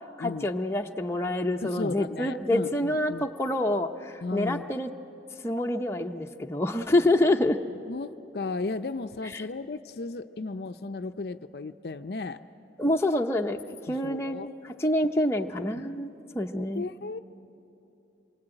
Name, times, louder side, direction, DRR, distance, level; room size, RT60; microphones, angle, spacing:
voice 1, 0.2-4.9 5.4-7.6 9.3-9.4 12.8-13.6 13.9-16.8, left 1 dB, 15° left, 3 dB, 0.7 m, -27 dB
voice 2, 1.6-3.3 4.2-4.8 7.9-12.4 13.9-14.5 16.6-17.2, left 3 dB, 55° left, 9 dB, 0.5 m, -35 dB
27.0 x 22.5 x 9.0 m, 2.9 s
head